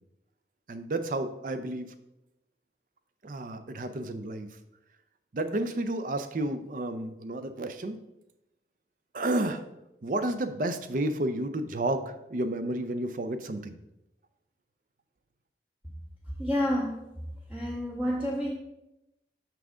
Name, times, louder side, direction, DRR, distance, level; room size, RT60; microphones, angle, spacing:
voice 1, 0.7-1.9 3.2-4.5 5.3-8.0 9.1-9.6 10.0-13.8, right 1 dB, 50° right, 10 dB, 0.5 m, -31 dB
voice 2, 16.4-17.0 17.5-18.5, equal, 5° right, -2 dB, 0.6 m, -29 dB
6.1 x 5.7 x 3.7 m, 0.89 s
head